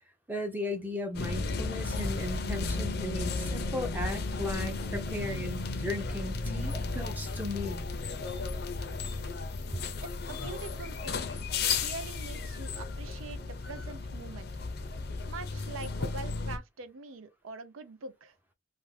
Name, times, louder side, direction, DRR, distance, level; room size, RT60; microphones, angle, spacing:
voice 1, 0.3-7.9 10.4-10.5, left 2 dB, 10° right, 0.5 m, -36 dB
sound 1, 1.1-16.6, left 3 dB, 50° left, 0.5 m, -34 dB
voice 2, 10.3-11.3 11.6-14.5 15.3-18.3, right 3 dB, 80° right, 0.5 m, -44 dB
2.6 x 2.5 x 3.2 m
head